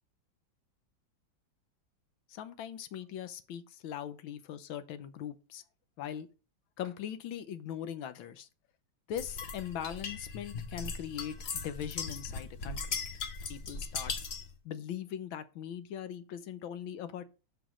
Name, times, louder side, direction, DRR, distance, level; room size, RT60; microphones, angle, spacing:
voice 1, 2.3-5.6 6.0-6.3 6.8-8.5 9.1-12.8 13.5-14.1 14.6-17.2, left 9 dB, 80° left, 1.6 m, -40 dB
sound 1, 9.2-14.5, left 5 dB, 50° left, 0.7 m, -39 dB
5.7 x 5.1 x 6.2 m
omnidirectional pair, 2.2 m